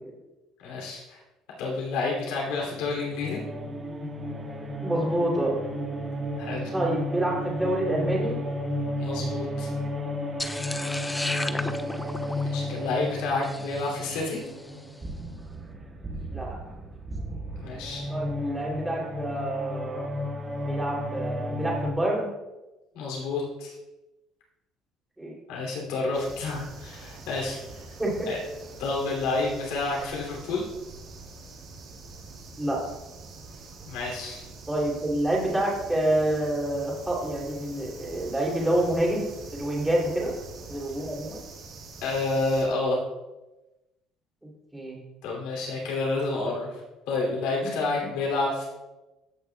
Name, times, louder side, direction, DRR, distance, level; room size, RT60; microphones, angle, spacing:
voice 1, 0.6-1.2 1.6-3.4 6.4-6.7 9.0-9.7 12.5-14.4 17.6-18.1 22.9-23.7 25.5-27.8 28.3-28.4 28.8-30.6 33.9-34.4 42.0-43.0 45.2-46.8 47.1-48.7, left 3 dB, 90° left, -3 dB, 2.8 m, -29 dB
sound 1, 2.7-21.9, equal, 25° right, 1.4 m, -33 dB
voice 2, 4.8-5.6 6.7-8.4 11.1-11.2 11.5-12.0 16.3-16.6 18.1-20.1 20.6-22.3 25.2-25.3 28.0-28.1 32.6-32.8 34.7-40.3 40.7-41.4 44.7-45.0 47.6-47.7, right 1 dB, 10° right, -4 dB, 2.9 m, -28 dB
sound 2, 10.4-14.7, left 1 dB, 10° left, 0.4 m, -35 dB
sound 3, 26.1-42.6, right 3 dB, 55° right, 2.5 m, -45 dB
15.5 x 6.4 x 2.3 m, 1.0 s
cardioid pair, 130°, 0 cm